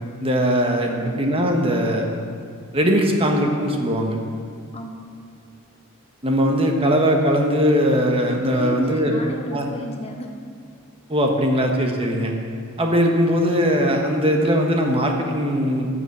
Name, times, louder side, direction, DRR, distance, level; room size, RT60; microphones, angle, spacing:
voice 1, 0.2-2.1 2.7-4.2 6.2-9.1 9.5-9.7 11.1-12.3 12.8-15.9, equal, 25° right, 2 dB, 1.3 m, -20 dB
voice 2, 0.8-1.2 4.7-5.1 8.5-10.4, left 1 dB, 30° left, 3 dB, 0.8 m, -33 dB
14.0 x 7.2 x 6.6 m, 2.3 s
head